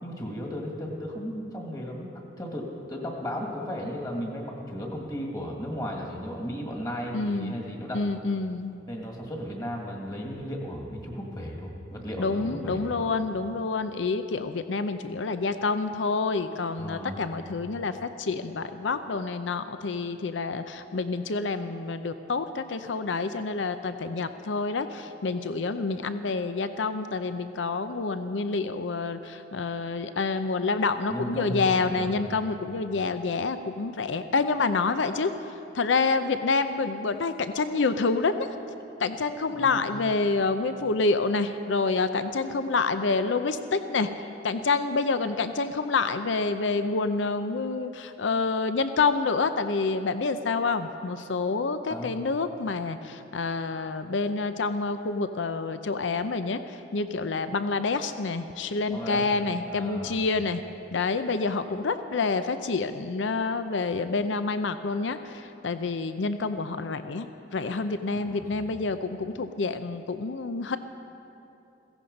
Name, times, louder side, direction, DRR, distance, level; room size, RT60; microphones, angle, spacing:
voice 1, 0.0-2.1 2.4-8.0 8.9-13.0 16.8-17.2 31.1-31.6 31.9-32.3 39.5-39.9 51.9-52.1 58.9-60.2 68.2-68.7, equal, 20° left, 0 dB, 1.9 m, -35 dB
voice 2, 7.1-7.6 7.9-8.8 12.2-35.3 35.7-38.4 39.0-44.1 44.4-60.6 60.9-67.3 67.5-70.8, left 4 dB, 85° left, 10 dB, 0.6 m, -28 dB
16.0 x 16.0 x 5.3 m, 2.7 s
head